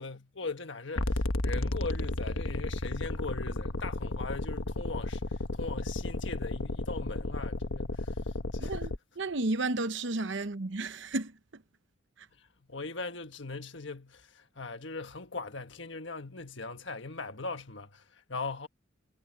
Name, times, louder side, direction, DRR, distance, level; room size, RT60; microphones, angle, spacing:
voice 1, 0.0-8.8 12.4-18.7, left 3 dB, 60° left, 1.5 m, -40 dB
sound 1, 1.0-9.0, left 2 dB, 80° left, 1.4 m, -33 dB
voice 2, 8.6-11.6 12.2-12.3, right 2 dB, 60° right, 0.9 m, -33 dB
head